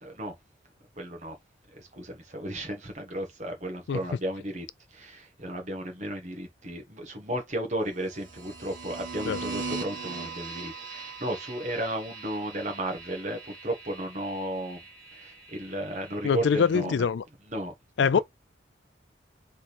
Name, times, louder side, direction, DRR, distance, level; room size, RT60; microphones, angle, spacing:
voice 1, 0.0-0.3 1.0-1.4 1.7-4.7 4.9-14.8 15.1-17.1 17.5-17.7 18.1-18.2, right 1 dB, 40° right, 1.4 m, -34 dB
sound 1, 8.0-16.8, right 4 dB, 85° right, 1.3 m, -41 dB
voice 2, 16.2-17.2 18.0-18.2, left 6 dB, 70° left, 0.4 m, -23 dB
3.8 x 3.3 x 4.3 m
head